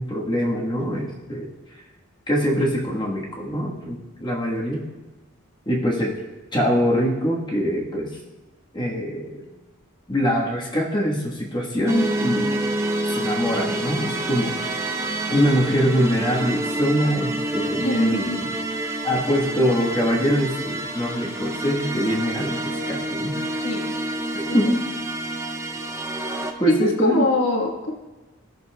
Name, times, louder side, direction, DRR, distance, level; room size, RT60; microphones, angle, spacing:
voice 1, 0.0-1.5 2.3-4.8 5.7-6.1 6.5-8.1 8.7-9.5 10.1-12.8 13.1-14.8 15.3-18.5 19.0-23.7 24.3-24.8 26.6-27.3, equal, 20° left, -3 dB, 1.3 m, -23 dB
sound 1, 11.9-26.5, right 2 dB, 15° right, 0.5 m, -28 dB
voice 2, 17.8-18.4 21.0-21.1 23.6-23.9 24.5-24.6 26.7-27.9, left 2 dB, 70° left, 1 dB, 1.4 m, -24 dB
16.5 x 6.7 x 2.2 m, 1.2 s
head